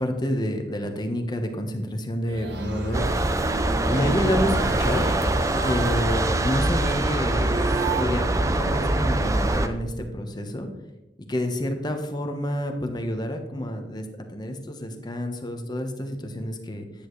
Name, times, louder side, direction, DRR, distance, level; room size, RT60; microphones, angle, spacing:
voice 1, 0.0-3.1 3.9-5.1 5.6-7.7 8.0-8.3 8.5-10.7 11.2-16.9, equal, 25° left, 5 dB, 1.1 m, -28 dB
sound 1, 2.3-8.0, right 3 dB, 80° right, 1.2 m, -34 dB
sound 2, 2.9-9.7, right 1 dB, 20° right, 0.6 m, -24 dB
10.0 x 9.2 x 3.2 m, 1.0 s
head